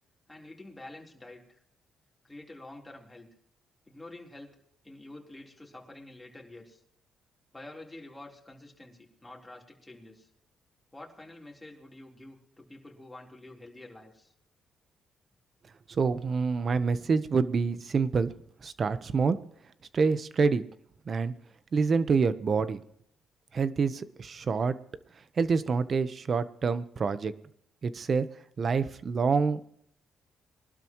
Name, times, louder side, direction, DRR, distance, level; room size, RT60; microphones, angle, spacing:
voice 1, 0.3-1.6 2.2-3.3 3.8-4.6 4.8-6.8 7.5-10.3 10.9-14.3, left 2 dB, 10° left, -1 dB, 3.9 m, -48 dB
voice 2, 15.9-18.3 18.6-19.4 19.9-20.7 21.1-21.3 21.7-22.8 23.5-24.8 25.4-27.3 27.8-28.3 28.6-29.7, right 5 dB, 45° right, 13 dB, 1.0 m, -27 dB
22.5 x 12.0 x 3.1 m, 0.69 s
cardioid pair, 90°, 0 cm